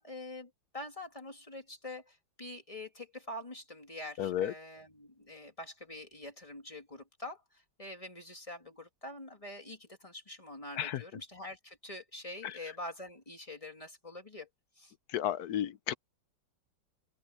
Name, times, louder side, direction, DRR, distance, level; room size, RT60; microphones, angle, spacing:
voice 1, 0.0-14.5 14.8-14.9, left 1 dB, 15° left, 2.4 m, -45 dB
voice 2, 4.2-4.5 10.8-11.0 12.4-12.6 15.1-15.9, left 11 dB, 65° left, 1.1 m, -33 dB
open air
omnidirectional pair, 2.1 m